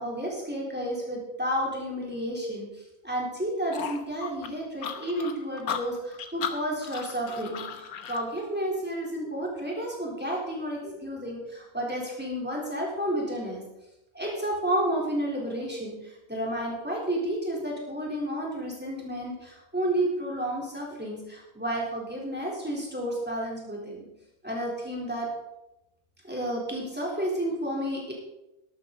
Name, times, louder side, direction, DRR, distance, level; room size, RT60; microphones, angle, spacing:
voice 1, 0.0-13.6 14.1-24.1 24.4-25.3 26.2-28.1, right 1 dB, 5° right, -3 dB, 3.8 m, -31 dB
sound 1, 3.7-8.2, left 8 dB, 80° left, 1.5 m, -35 dB
13.0 x 12.0 x 4.1 m, 0.92 s
omnidirectional pair, 1.5 m